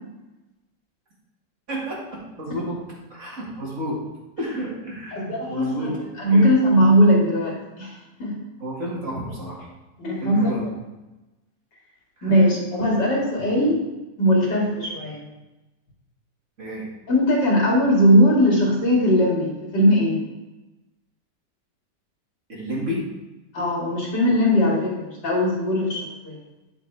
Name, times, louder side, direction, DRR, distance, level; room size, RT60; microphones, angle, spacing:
voice 1, 1.7-2.8 3.1-4.0 4.4-6.5 8.6-9.7 10.2-10.7 12.2-12.4 16.6-16.9 22.5-23.0, equal, 45° right, -5 dB, 2.6 m, -31 dB
voice 2, 5.1-5.9 6.2-8.4 10.0-10.6 12.2-13.8 14.2-15.3 17.1-20.2 23.5-26.4, equal, 80° left, -4 dB, 3.3 m, -19 dB
10.0 x 6.9 x 3.5 m, 1.1 s
omnidirectional pair, 1.8 m